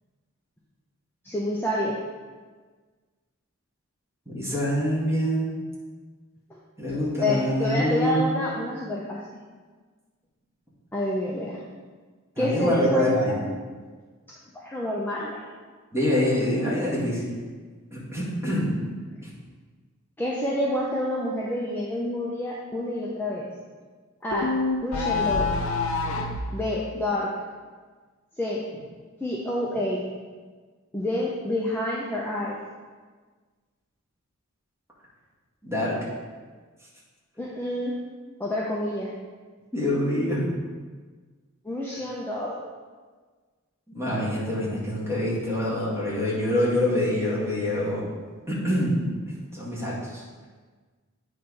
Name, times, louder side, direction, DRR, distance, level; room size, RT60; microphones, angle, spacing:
voice 1, 1.2-2.0 6.5-6.6 7.2-9.4 10.9-11.6 12.4-13.4 14.5-15.4 20.2-23.5 24.2-24.5 24.8-25.5 26.5-27.3 28.4-28.6 29.2-30.0 30.9-32.6 37.4-37.9 38.4-39.1 41.6-42.6, left 1 dB, 10° left, -5 dB, 0.7 m, -28 dB
voice 2, 4.3-5.6 6.8-8.3 12.4-13.4 15.9-17.3 17.9-18.8 35.6-36.0 39.7-40.5 43.9-48.0 48.5-49.0 49.5-50.2, left 1 dB, 10° right, -7 dB, 2.0 m, -25 dB
sound 1, 24.3-26.5, left 4 dB, 75° left, 0.7 m, -26 dB
8.6 x 3.3 x 5.4 m, 1.4 s
head